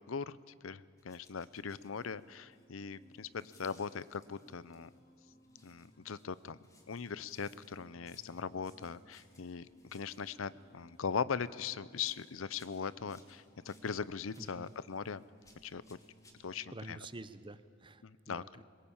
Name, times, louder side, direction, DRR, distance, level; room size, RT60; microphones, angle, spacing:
voice 1, 0.6-4.9 5.6-6.6 6.9-15.2 15.6-15.8 16.4-17.0 18.0-18.6, left 6 dB, 90° left, 17 dB, 0.6 m, -40 dB
sound 1, 1.0-5.0 5.4-11.6 11.9-16.3, left 2 dB, 15° left, 3.0 m, -67 dB
sound 2, 1.3-17.3, equal, 45° left, 3.8 m, -64 dB
voice 2, 14.4-14.7 16.7-18.6, right 2 dB, 25° right, 13 dB, 0.8 m, -49 dB
22.0 x 21.0 x 8.7 m, 2.1 s
head